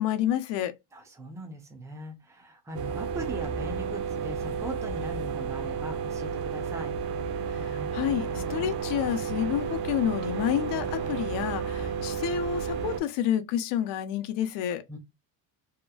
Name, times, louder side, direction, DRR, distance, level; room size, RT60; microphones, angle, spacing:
voice 1, 0.0-0.7 7.5-14.8, left 11 dB, 65° left, 0.6 m, -29 dB
voice 2, 0.9-6.9 14.9-15.0, right 2 dB, 5° right, 0.4 m, -40 dB
sound 1, 2.7-13.0, right 6 dB, 55° right, 0.7 m, -32 dB
2.9 x 2.4 x 2.2 m
cardioid pair, 170°, 45 cm